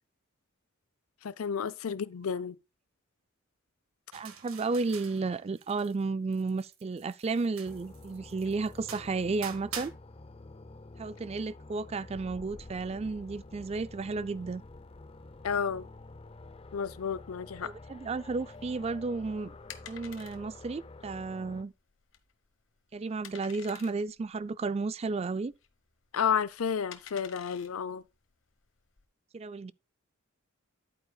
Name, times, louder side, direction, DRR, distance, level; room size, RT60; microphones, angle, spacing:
voice 1, 1.2-2.6 15.4-15.9 16.7-17.7 26.1-28.0, left 7 dB, 85° left, 0.5 m, -31 dB
voice 2, 4.1-9.9 11.0-14.6 17.6-19.5 19.9-21.7 22.9-25.5 29.3-29.7, right 3 dB, 30° right, 0.3 m, -33 dB
sound 1, 4.1-6.0 6.3-9.9, right 8 dB, 85° right, 1.6 m, -46 dB
sound 2, 7.6-21.6, left 2 dB, 25° left, 0.5 m, -49 dB
sound 3, 18.4-29.1, left 9 dB, 60° left, 1.1 m, -52 dB
10.5 x 8.7 x 2.3 m
head